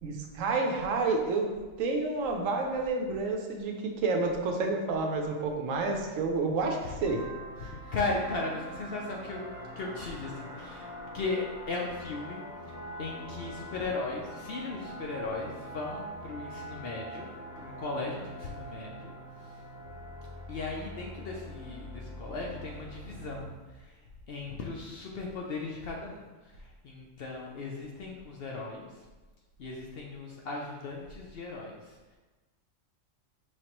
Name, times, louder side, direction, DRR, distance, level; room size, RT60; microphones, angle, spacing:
voice 1, 0.0-1.5 1.8-7.2, right 3 dB, 75° right, 3 dB, 1.0 m, -29 dB
sound 1, 7.0-23.6, equal, 85° left, 1.4 m, -44 dB
voice 2, 7.6-10.9 11.1-12.4 13.0-17.3 17.6-19.1 20.5-23.5 24.3-26.3 26.8-28.9 29.6-31.9, left 3 dB, 60° left, -1 dB, 0.6 m, -37 dB
5.1 x 3.1 x 2.9 m, 1.2 s
omnidirectional pair, 1.4 m